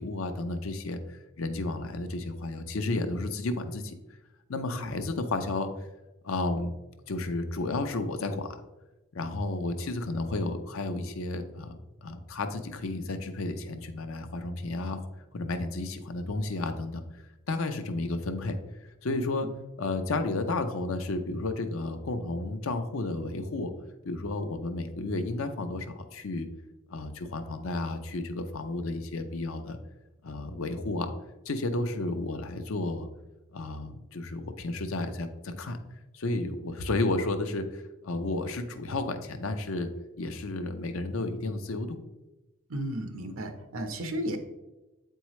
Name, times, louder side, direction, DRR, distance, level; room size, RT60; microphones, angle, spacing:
voice 1, 0.0-3.9 4.5-5.7 6.2-6.7 7.1-8.6 9.1-15.0 15.3-17.0 17.5-18.6 19.0-19.5 19.8-23.7 24.0-26.5 26.9-29.8 30.2-31.1 31.5-33.1 33.5-35.8 36.1-39.9 40.2-42.0, left 2 dB, 80° left, 7 dB, 0.6 m, -32 dB
voice 2, 42.7-44.4, equal, 85° right, 7 dB, 0.8 m, -34 dB
8.0 x 4.5 x 3.1 m, 1.0 s
head